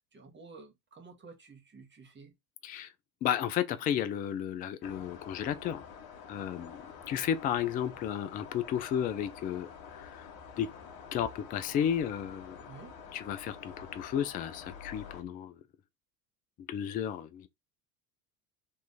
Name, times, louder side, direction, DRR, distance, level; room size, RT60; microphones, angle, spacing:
voice 1, 0.1-2.3 12.7-12.9, right 4 dB, 20° right, 1.5 m, -51 dB
voice 2, 3.2-5.8 6.3-10.2 10.6-10.7 11.1-12.6 13.1-15.5 16.7-17.5, left 9 dB, 20° left, 0.3 m, -33 dB
sound 1, 4.8-15.2, left 6 dB, 55° left, 1.8 m, -48 dB
3.6 x 3.1 x 4.0 m
hypercardioid pair, 75°, 50 cm